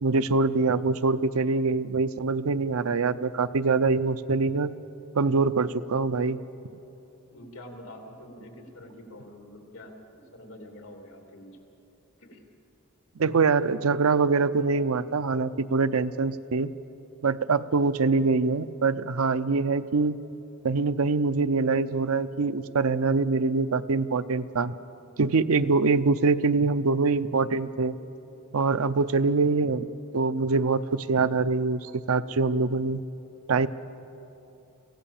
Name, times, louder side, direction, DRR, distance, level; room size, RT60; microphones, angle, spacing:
voice 1, 0.0-4.7 5.1-6.4 13.2-16.7 17.2-20.1 20.6-24.7 25.2-27.9 28.5-29.9 30.1-33.0 33.5-33.7, right 4 dB, 80° right, 13 dB, 0.6 m, -24 dB
voice 2, 7.3-11.7 12.2-12.5, left 1 dB, 70° left, 3 dB, 2.8 m, -46 dB
24.5 x 16.5 x 7.2 m, 2.9 s
head